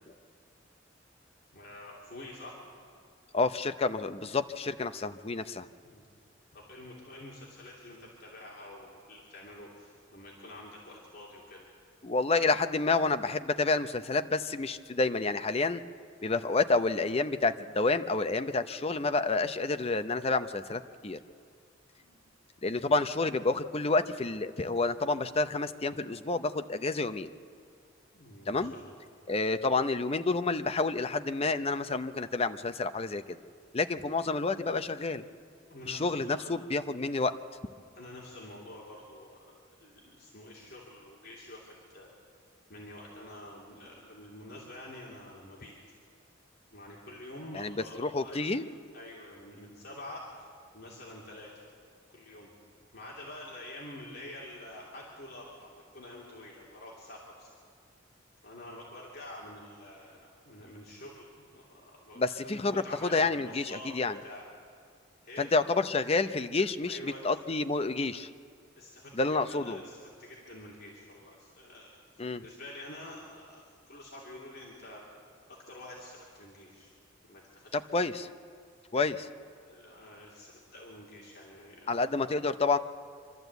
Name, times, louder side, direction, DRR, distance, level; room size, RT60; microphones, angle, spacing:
voice 1, 1.5-2.6 5.8-6.1 6.5-11.7 22.0-22.2 28.1-29.0 35.6-36.5 37.9-39.4 39.8-42.1 42.7-45.7 46.7-48.5 48.9-50.5 50.7-51.5 52.1-52.5 52.9-57.5 58.4-63.9 64.2-64.4 65.2-65.5 66.8-67.5 68.8-71.9 72.1-75.0 75.5-76.9 77.3-78.0 79.6-82.3, left 1 dB, 55° left, -4 dB, 3.0 m, -47 dB
voice 2, 3.3-5.7 12.0-15.8 16.2-21.2 22.6-27.3 28.5-28.7 29.3-33.4 33.7-35.2 35.9-37.3 47.5-48.7 62.2-64.2 65.4-68.3 69.1-69.8 72.2-72.4 77.7-78.3 78.9-79.3 81.9-82.8, left 3 dB, 30° left, 10 dB, 0.6 m, -29 dB
25.5 x 12.5 x 8.1 m, 2.1 s
head